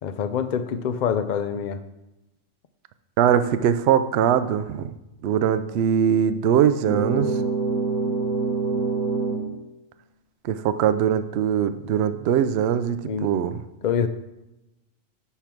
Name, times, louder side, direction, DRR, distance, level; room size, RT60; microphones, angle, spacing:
voice 1, 0.0-1.8 13.0-13.3 13.8-14.1, left 7 dB, 60° left, 10 dB, 0.5 m, -25 dB
voice 2, 3.2-4.9 5.2-7.3 10.4-13.6, right 9 dB, 65° right, 12 dB, 0.7 m, -21 dB
sound 1, 6.8-9.5, right 4 dB, 15° left, 1.0 m, -25 dB
9.9 x 3.6 x 6.0 m, 0.96 s
omnidirectional pair, 1.4 m